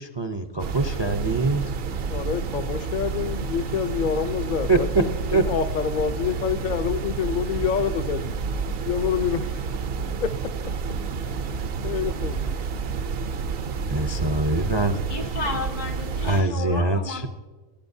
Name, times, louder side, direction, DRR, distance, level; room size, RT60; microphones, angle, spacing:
voice 1, 0.0-1.6 4.7-4.8 5.3-5.4 13.9-15.0 16.2-17.3, right 2 dB, 40° right, 7 dB, 0.4 m, -23 dB
sound 1, 0.6-16.4, right 5 dB, 60° right, 0.7 m, -29 dB
voice 2, 2.1-8.4 8.9-9.7 10.2-11.0 11.8-12.5, left 7 dB, 55° left, 9 dB, 0.5 m, -27 dB
voice 3, 15.1-17.3, left 2 dB, 75° left, 7 dB, 1.6 m, -33 dB
23.5 x 11.0 x 2.7 m, 1.3 s
omnidirectional pair, 1.3 m